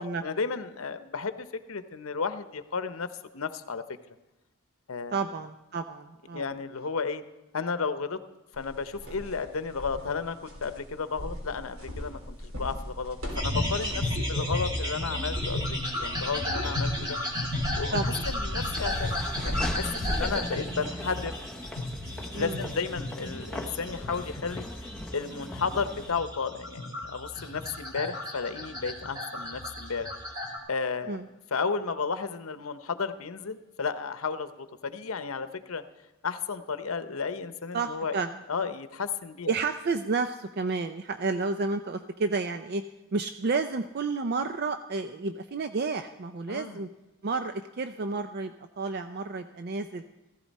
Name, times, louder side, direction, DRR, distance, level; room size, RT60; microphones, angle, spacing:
voice 1, 0.0-3.1 3.3-3.8 4.9-5.2 6.3-7.2 7.5-8.2 8.5-14.0 14.3-17.2 17.7-21.3 22.3-24.7 25.1-30.1 30.7-31.2 31.5-35.8 36.2-38.2 38.5-39.5 46.5-46.8, left 5 dB, 80° left, 11 dB, 0.8 m, -33 dB
voice 2, 5.1-6.5 17.9-18.2 22.3-22.7 31.1-31.3 37.7-38.3 38.6-38.7 39.5-42.8 43.1-46.9 47.2-50.0, right 4 dB, 50° right, 8 dB, 0.5 m, -31 dB
sound 1, 8.5-20.4, equal, 75° right, 3.3 m, -38 dB
sound 2, 13.4-30.6, left 1 dB, 20° right, 2.3 m, -33 dB
Laughter / Walk footsteps, 18.6-26.1, left 1 dB, 5° left, 0.7 m, -39 dB
15.0 x 15.0 x 4.1 m, 1.1 s
head